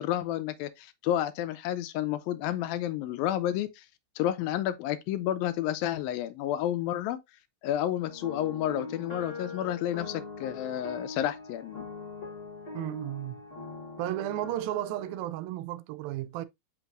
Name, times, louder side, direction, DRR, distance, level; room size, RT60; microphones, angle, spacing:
voice 1, 0.0-3.8 4.2-7.2 7.6-11.8, left 12 dB, 85° left, 2.4 m, -30 dB
sound 1, 8.0-15.2, left 3 dB, 55° left, 0.6 m, -41 dB
voice 2, 12.7-13.4 14.0-16.5, right 15 dB, 85° right, 2.4 m, -33 dB
7.0 x 5.4 x 2.5 m
omnidirectional pair, 4.1 m